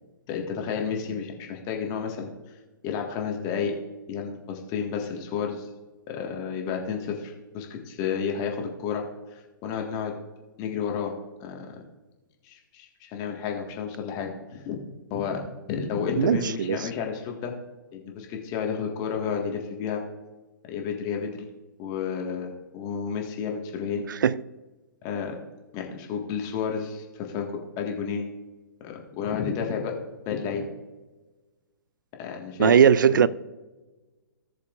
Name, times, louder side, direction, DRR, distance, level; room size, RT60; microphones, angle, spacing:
voice 1, 0.3-2.3 2.8-3.7 4.1-5.7 6.1-9.0 9.6-10.1 10.6-11.1 11.4-11.8 12.4-14.8 15.1-15.4 15.7-17.5 17.9-20.0 20.7-21.5 21.8-24.0 25.0-25.4 25.7-28.3 28.8-29.9 30.3-30.7 32.2-32.7 33.1-33.3, left 6 dB, 30° left, 1.7 m, -31 dB
voice 2, 16.2-16.9 24.1-24.4 32.6-33.3, right 8 dB, 65° right, 0.4 m, -19 dB
17.0 x 6.8 x 2.5 m
figure-of-eight pair, 115°, 11 cm